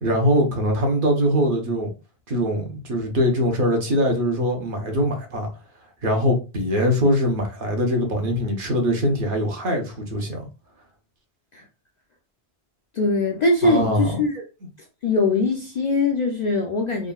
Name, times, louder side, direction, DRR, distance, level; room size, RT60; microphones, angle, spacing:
voice 1, 0.0-1.9 2.3-5.5 6.0-10.5 13.6-14.2, equal, 55° right, 1.0 m, -22 dB
voice 2, 13.0-14.4 15.0-17.1, left 3 dB, 55° left, 0.5 m, -21 dB
3.5 x 2.1 x 2.2 m
omnidirectional pair, 1.1 m